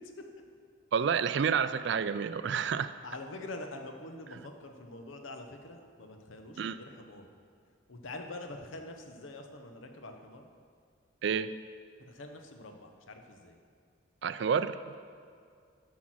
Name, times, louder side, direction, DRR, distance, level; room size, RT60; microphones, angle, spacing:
voice 1, 0.9-2.9 4.3-4.4 6.6-6.8 11.2-11.6 14.2-14.8, right 6 dB, 60° right, 13 dB, 0.3 m, -29 dB
voice 2, 3.0-7.3 7.9-10.5 12.1-13.6, left 2 dB, 75° left, 5 dB, 0.9 m, -45 dB
8.1 x 6.1 x 6.2 m, 2.2 s
head